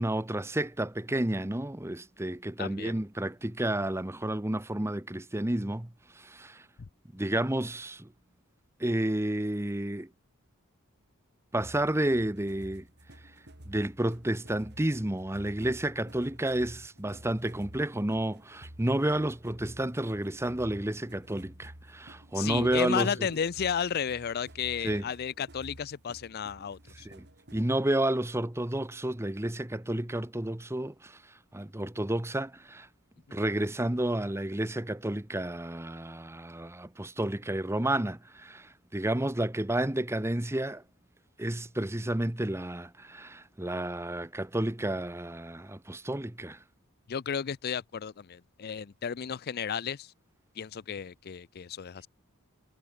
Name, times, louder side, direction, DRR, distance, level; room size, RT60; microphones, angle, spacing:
voice 1, 0.0-6.7 7.1-8.1 8.8-10.1 11.5-12.9 13.7-23.3 24.8-25.0 27.0-27.2 27.5-31.2 31.5-32.9 33.3-40.8 41.4-46.6, right 1 dB, 10° right, 0.9 m, -31 dB
voice 2, 2.6-2.9 22.3-27.1 47.1-50.1 50.6-52.1, left 7 dB, 45° left, 0.4 m, -33 dB
sound 1, 11.6-27.8, right 1 dB, 50° right, 5.0 m, -51 dB
head